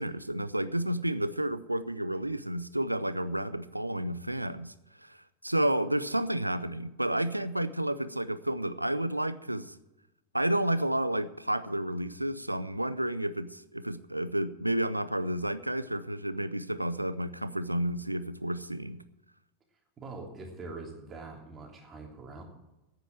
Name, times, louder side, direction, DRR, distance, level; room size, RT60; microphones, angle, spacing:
voice 1, 0.0-4.7 5.0-5.2 5.4-9.7 10.3-19.0, right 1 dB, 85° right, 15 dB, 0.6 m, -31 dB
voice 2, 20.0-22.4, right 3 dB, 25° right, 1 dB, 3.1 m, -43 dB
9.6 x 9.1 x 8.9 m, 0.97 s
figure-of-eight pair, 90°, 0 cm